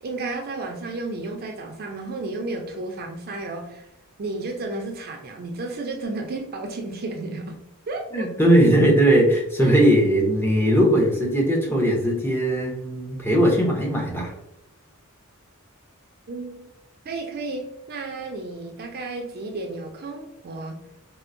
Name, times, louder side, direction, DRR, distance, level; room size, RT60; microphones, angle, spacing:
voice 1, 0.0-3.9 4.2-7.6 7.9-8.3 9.6-9.7 16.3-16.7 17.0-20.8, right 2 dB, 45° right, 2 dB, 0.4 m, -32 dB
voice 2, 8.1-14.3, right 1 dB, 10° left, -1 dB, 0.6 m, -19 dB
4.3 x 2.0 x 2.5 m, 0.85 s
head